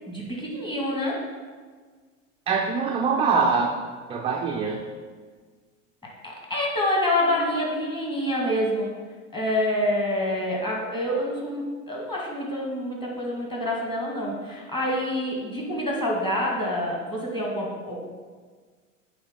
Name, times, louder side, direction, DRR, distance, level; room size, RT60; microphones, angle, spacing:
voice 1, 0.1-1.2 6.2-8.9 9.3-18.0, left 1 dB, 10° left, -3 dB, 2.1 m, -27 dB
voice 2, 2.5-3.8 4.1-4.8, right 5 dB, 15° right, 1 dB, 0.4 m, -23 dB
8.0 x 3.2 x 5.3 m, 1.5 s
hypercardioid pair, 90°, 39 cm